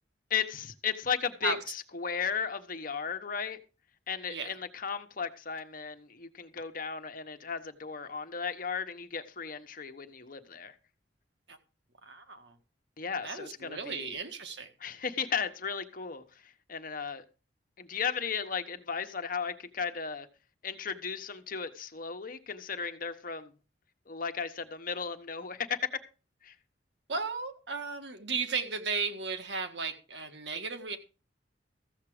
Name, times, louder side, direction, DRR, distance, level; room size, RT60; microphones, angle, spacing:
voice 1, 0.3-3.6 4.1-10.8 13.0-14.2 14.8-17.2 17.8-20.3 20.6-23.5 24.1-26.0 26.4-26.5, left 6 dB, 50° left, 1.2 m, -35 dB
voice 2, 12.0-12.6 13.2-14.7 27.1-31.0, right 4 dB, 70° right, 1.7 m, -35 dB
14.5 x 7.4 x 5.0 m
head